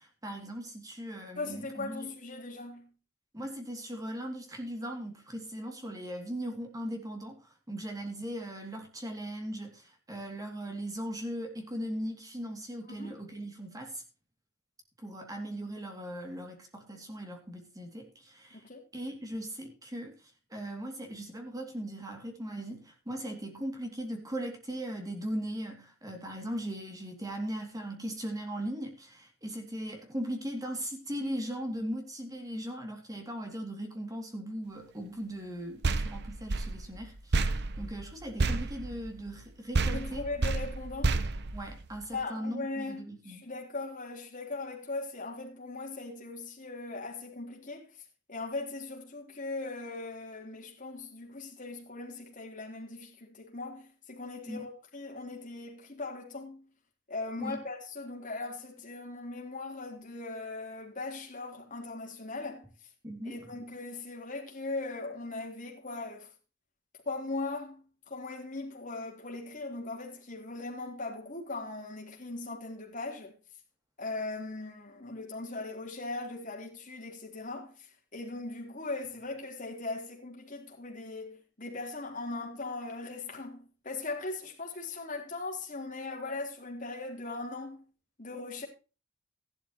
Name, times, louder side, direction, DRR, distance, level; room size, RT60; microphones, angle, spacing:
voice 1, 0.0-2.1 3.3-14.0 15.0-40.3 41.5-43.5 54.5-54.7 57.4-57.6 63.0-63.6, equal, 15° right, 2.6 m, -39 dB
voice 2, 1.4-2.9 13.0-13.1 18.6-18.8 39.9-41.2 42.1-47.9 48.3-56.6 57.1-62.7 63.3-66.3 67.1-73.3 74.0-77.7 78.1-87.8 88.2-88.7, left 3 dB, 40° left, 3.7 m, -39 dB
sound 1, 35.8-39.5 39.7-42.2, right 3 dB, 55° right, 0.9 m, -31 dB
14.5 x 11.5 x 3.0 m
head